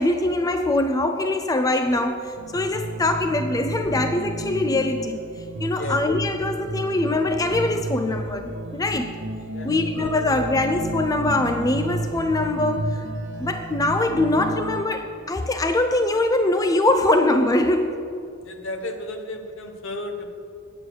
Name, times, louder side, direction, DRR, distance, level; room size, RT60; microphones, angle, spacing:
voice 1, 0.0-5.2 5.6-9.1 9.6-13.0 13.4-18.0, left 2 dB, 15° left, 7 dB, 0.4 m, -23 dB
sound 1, 2.4-14.8, right 2 dB, 60° right, 0.7 m, -32 dB
voice 2, 5.7-6.1 9.5-10.0 18.4-20.3, left 2 dB, 65° left, 5 dB, 1.0 m, -33 dB
8.6 x 7.8 x 6.5 m, 2.4 s
head